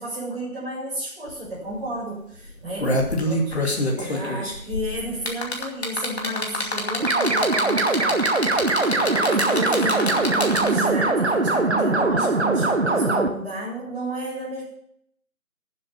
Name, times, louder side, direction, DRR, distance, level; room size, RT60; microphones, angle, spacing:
voice 1, 0.0-8.6 8.9-14.6, right 1 dB, 5° right, -15 dB, 3.0 m, -32 dB
sound 1, 1.3-1.4 1.7-1.9 2.5-10.9 12.1-12.2, left 1 dB, 45° left, 2.5 m, -26 dB
sound 2, 7.0-13.3, right 3 dB, 50° right, 1.3 m, -21 dB
12.0 x 7.8 x 7.4 m, 0.70 s
figure-of-eight pair, 175°, 43 cm